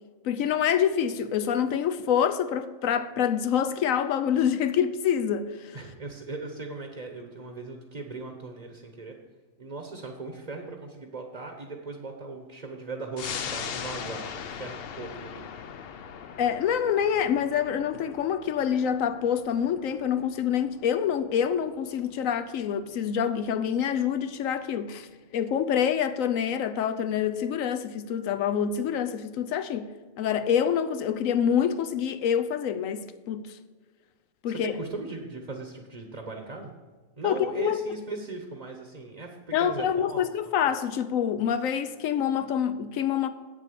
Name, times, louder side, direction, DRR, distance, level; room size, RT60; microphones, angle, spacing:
voice 1, 0.2-5.8 16.4-25.1 25.3-29.9 30.2-33.6 34.4-34.7 37.2-37.8 39.5-43.3, left 8 dB, 75° left, 1.0 m, -26 dB
voice 2, 5.7-9.2 9.6-15.7 34.5-36.7 37.2-40.3, right 3 dB, 35° right, 1.0 m, -38 dB
sound 1, 13.2-24.1 24.5-24.6, left 7 dB, 55° left, 0.7 m, -41 dB
8.2 x 7.3 x 6.8 m
omnidirectional pair, 1.4 m